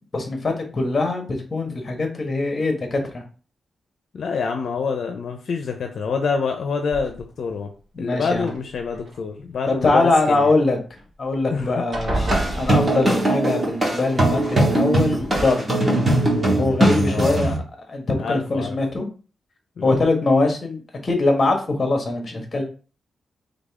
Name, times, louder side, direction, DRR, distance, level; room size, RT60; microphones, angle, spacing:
voice 1, 0.1-3.2 7.9-8.4 9.7-10.8 11.2-12.3 12.6-15.9 16.5-17.6 17.9-19.1 19.8-22.6, left 2 dB, 35° left, 3 dB, 1.4 m, -22 dB
voice 2, 4.1-7.7 8.0-10.5 11.5-11.8 12.5-12.6 17.0-17.6 18.2-18.8 19.8-20.0, left 5 dB, 70° left, 4 dB, 0.6 m, -27 dB
sound 1, 6.9-7.5 8.3-9.2 11.0-11.1 11.4-11.6 11.9-13.4 14.5-14.6 15.1-15.5, right 1 dB, 45° right, 2.0 m, -29 dB
sound 2, 12.1-17.6, right 1 dB, 25° right, 2.1 m, -20 dB
4.0 x 3.5 x 3.6 m, 0.38 s
cardioid pair, 95°, 0 cm